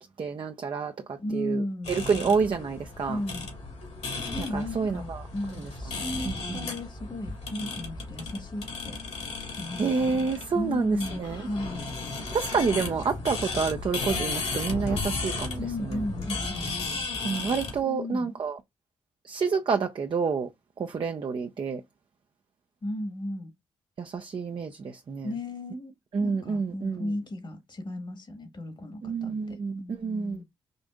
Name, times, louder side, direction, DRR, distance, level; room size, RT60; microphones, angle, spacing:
voice 1, 0.2-1.6 1.9-3.2 4.5-5.3 5.5-5.7 6.2-6.7 9.8-11.4 12.3-16.0 17.2-18.6 19.2-20.5 20.8-21.8 24.0-25.3 26.1-27.1 29.0-30.4, right 5 dB, 45° right, 0.5 m, -28 dB
voice 2, 1.2-2.0 3.1-3.5 4.3-9.0 9.5-11.9 15.6-17.1 17.8-18.3 22.8-23.5 25.2-30.4, left 1 dB, 40° left, 1.4 m, -35 dB
sound 1, 1.8-17.8, left 3 dB, 65° left, 2.2 m, -35 dB
5.2 x 2.6 x 2.4 m
hypercardioid pair, 45°, 12 cm